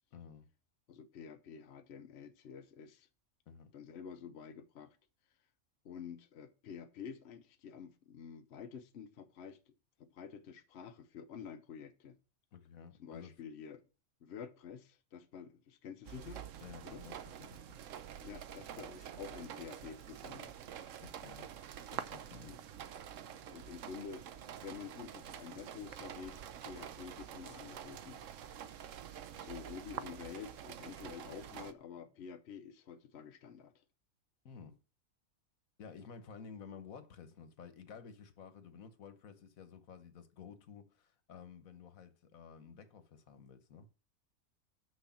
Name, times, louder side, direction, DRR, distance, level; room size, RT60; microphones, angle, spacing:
voice 1, 0.1-0.5 3.5-3.7 12.5-13.3 16.6-17.8 21.0-21.5 21.9-22.6 34.4-34.8 35.8-43.9, left 6 dB, 80° left, 1.4 m, -53 dB
voice 2, 0.9-3.1 3.7-5.0 5.8-9.7 10.0-12.2 13.0-13.8 14.2-16.4 16.8-17.0 18.2-20.5 22.4-22.6 23.5-28.2 29.4-33.7, left 7 dB, 60° left, 0.9 m, -49 dB
sound 1, 16.1-31.7, right 9 dB, 70° right, 1.0 m, -47 dB
sound 2, 19.1-32.4, left 3 dB, 25° left, 1.5 m, -73 dB
6.4 x 6.2 x 7.2 m
omnidirectional pair, 1.4 m